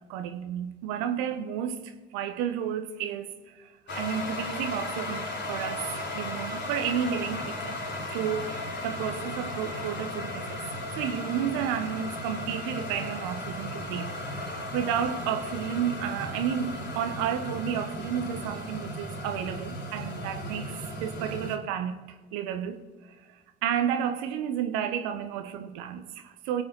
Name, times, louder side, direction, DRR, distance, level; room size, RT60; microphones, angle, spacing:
voice 1, 0.1-3.7 4.0-7.8 8.1-10.6 11.0-22.8 23.6-26.6, right 8 dB, 75° right, 1.3 m, -32 dB
sound 1, 3.9-21.6, left 1 dB, 35° left, 3.9 m, -35 dB
21.5 x 8.4 x 4.1 m
hypercardioid pair, 65°, 30 cm